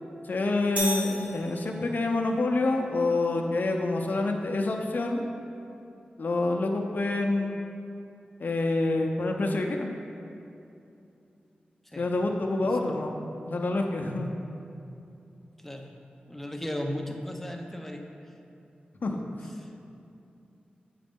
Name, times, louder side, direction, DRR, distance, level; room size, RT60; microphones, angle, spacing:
voice 1, 0.2-5.2 6.2-7.6 8.4-9.9 12.0-13.1 13.5-14.3 19.0-19.2, left 2 dB, 60° left, 2 dB, 0.7 m, -27 dB
sound 1, 0.8-2.1, equal, 50° right, 1.2 m, -34 dB
voice 2, 12.6-13.0 15.6-15.9 16.3-18.1 19.6-19.7, left 1 dB, 5° left, 2 dB, 0.6 m, -36 dB
7.6 x 5.1 x 3.6 m, 2.7 s
wide cardioid pair, 75°, 3 cm